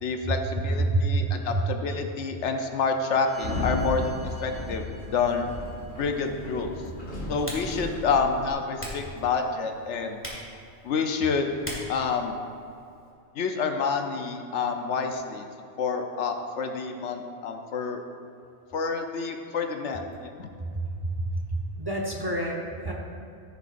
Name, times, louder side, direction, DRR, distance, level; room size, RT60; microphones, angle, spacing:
voice 1, 0.0-5.5 6.0-6.7 7.3-10.2 10.8-11.6 11.9-12.3 13.4-15.4 15.8-18.0 18.7-20.5, left 5 dB, 80° left, 5 dB, 1.0 m, -28 dB
voice 2, 0.8-1.6 20.7-22.9, right 2 dB, 25° right, -1 dB, 0.8 m, -28 dB
Sliding door, 3.3-8.5, left 2 dB, 55° left, 2.0 m, -34 dB
Typing, 5.6-13.1, equal, 10° left, 1.6 m, -43 dB
14.5 x 7.1 x 2.5 m, 2.5 s
omnidirectional pair, 1.2 m